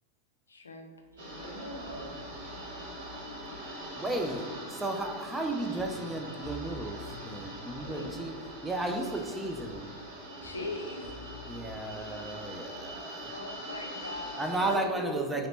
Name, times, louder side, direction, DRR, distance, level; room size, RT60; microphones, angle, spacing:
voice 1, 0.5-0.9 7.8-8.1 10.4-11.1 13.3-14.6, left 2 dB, 75° left, 3 dB, 0.5 m, -40 dB
sound 1, 1.1-13.1, left 2 dB, 30° left, 0.8 m, -51 dB
voice 2, 1.1-2.3 4.0-4.2 14.6-15.5, right 1 dB, 85° right, -4 dB, 0.9 m, -40 dB
sound 2, 1.2-14.8, right 1 dB, 60° right, 1.3 m, -43 dB
voice 3, 3.9-8.3 8.6-9.9 11.5-13.3 14.4-15.5, right 2 dB, 5° right, 3 dB, 0.4 m, -34 dB
3.9 x 2.9 x 3.2 m, 1.4 s
figure-of-eight pair, 90°, 0 cm